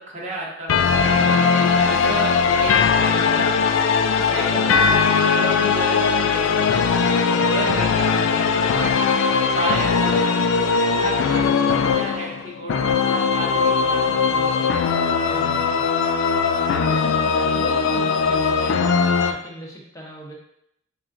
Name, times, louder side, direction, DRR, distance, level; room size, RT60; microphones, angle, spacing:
voice 1, 0.1-1.4 1.8-2.3 2.6-3.7 4.1-7.0 7.3-9.1 9.5-10.5 10.8-14.7 17.3-17.6, right 1 dB, 35° right, -4 dB, 1.0 m, -32 dB
sound 1, 0.7-19.3, left 5 dB, 70° left, 0.3 m, -19 dB
voice 2, 1.8-2.4 7.3-7.5 13.7-14.1 15.2-15.8 16.8-20.3, equal, 15° left, -3 dB, 0.8 m, -39 dB
5.6 x 2.4 x 2.5 m, 0.77 s
head